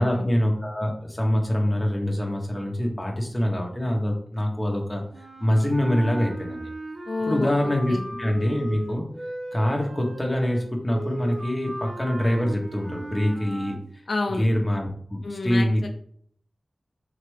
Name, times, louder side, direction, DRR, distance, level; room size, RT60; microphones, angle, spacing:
voice 1, 0.0-5.0 5.4-6.7 7.2-9.0 9.5-13.8 14.4-15.8, equal, 15° left, 0 dB, 1.1 m, -25 dB
sound 1, 5.1-13.8, right 1 dB, 55° right, 1.1 m, -36 dB
voice 2, 7.1-8.0 14.1-14.5 15.2-15.9, left 3 dB, 80° left, 4 dB, 0.4 m, -30 dB
4.5 x 2.8 x 3.2 m, 0.63 s
wide cardioid pair, 65°, 0 cm